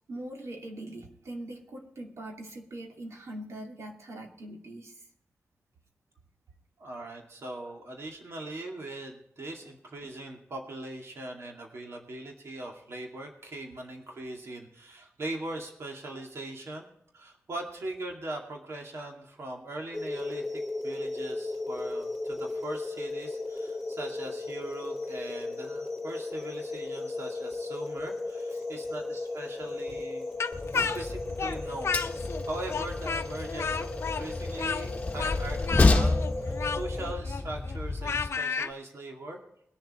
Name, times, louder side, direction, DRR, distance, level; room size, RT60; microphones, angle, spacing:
voice 1, 0.1-5.0 28.5-28.6 29.9-30.0 30.7-31.0, right 1 dB, 85° right, 0 dB, 2.6 m, -42 dB
voice 2, 6.8-16.9 17.1-30.3 30.8-39.4, right 2 dB, 70° right, 1 dB, 2.3 m, -40 dB
sound 1, 19.9-37.1, left 2 dB, 5° right, 2.4 m, -36 dB
Speech, 30.4-32.4 32.7-38.7, left 5 dB, 65° left, 0.6 m, -32 dB
Train, 30.5-38.3, left 3 dB, 30° left, 1.1 m, -30 dB
21.5 x 7.2 x 4.4 m, 0.73 s
wide cardioid pair, 165°, 5 cm